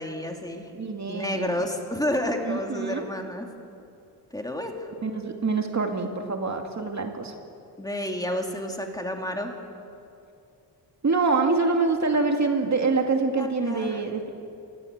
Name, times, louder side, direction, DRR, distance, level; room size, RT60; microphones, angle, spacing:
voice 1, 0.0-0.7 1.1-3.5 4.3-4.9 7.8-9.5 13.4-14.0, left 1 dB, 10° left, 2 dB, 2.8 m, -30 dB
voice 2, 0.7-1.6 2.4-3.1 5.0-7.3 11.0-14.3, right 4 dB, 40° right, 3 dB, 2.4 m, -25 dB
28.0 x 24.5 x 8.2 m, 2.6 s
wide cardioid pair, 130°, 43 cm